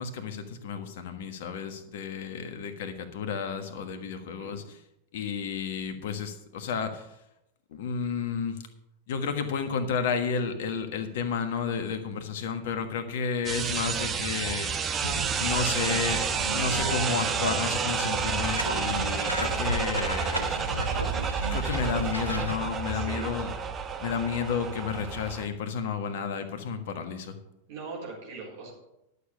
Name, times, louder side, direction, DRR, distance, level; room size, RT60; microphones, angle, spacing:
voice 1, 0.0-4.8 5.1-7.1 7.7-8.7 9.1-14.8 15.4-16.3 16.5-20.7 21.5-23.5 24.0-27.4, left 6 dB, 55° left, 8 dB, 1.4 m, -32 dB
voice 2, 4.2-4.6 22.9-23.3 27.7-28.7, right 4 dB, 50° right, -3 dB, 4.3 m, -41 dB
sound 1, 13.5-25.5, right 6 dB, 25° right, 1.0 m, -30 dB
sound 2, 15.0-22.5, equal, 85° left, 1.4 m, -35 dB
11.5 x 6.8 x 7.0 m, 0.85 s
figure-of-eight pair, 90°, 0 cm